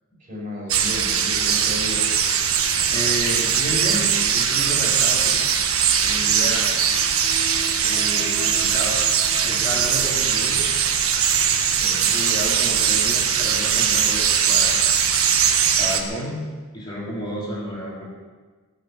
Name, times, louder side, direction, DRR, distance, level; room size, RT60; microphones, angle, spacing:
voice 1, 0.2-2.1 11.7-12.1 17.5-17.8, left 1 dB, 35° right, -4 dB, 6.5 m, -34 dB
sound 1, 0.7-16.0, right 7 dB, 80° right, 1.4 m, -20 dB
sound 2, 2.6-3.6 5.6-10.7 11.4-11.6 12.4-12.5, right 2 dB, 55° right, 3.6 m, -41 dB
voice 2, 2.9-5.6 6.0-6.7 7.8-9.0 9.4-10.7 12.1-14.8 15.8-16.5 16.7-18.1, equal, 20° left, -7 dB, 3.7 m, -31 dB
17.5 x 7.0 x 9.4 m, 1.4 s
head